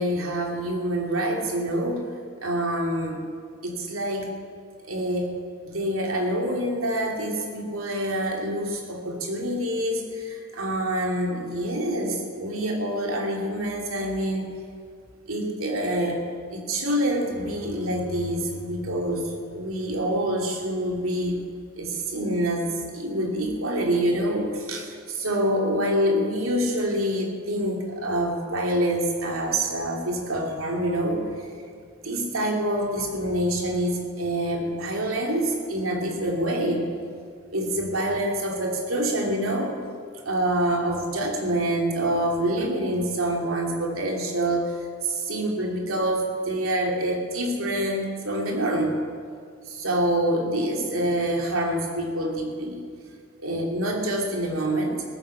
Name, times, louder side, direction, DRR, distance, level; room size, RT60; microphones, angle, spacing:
voice 1, 0.0-2.1 2.4-3.3 3.6-4.3 4.8-5.3 5.6-14.5 15.3-16.3 16.5-21.4 21.8-31.5 32.0-36.9 37.5-39.7 40.2-49.0 49.7-52.8 53.4-55.0, right 1 dB, 85° right, 0 dB, 2.8 m, -26 dB
17.5 x 10.0 x 7.2 m, 2.1 s
head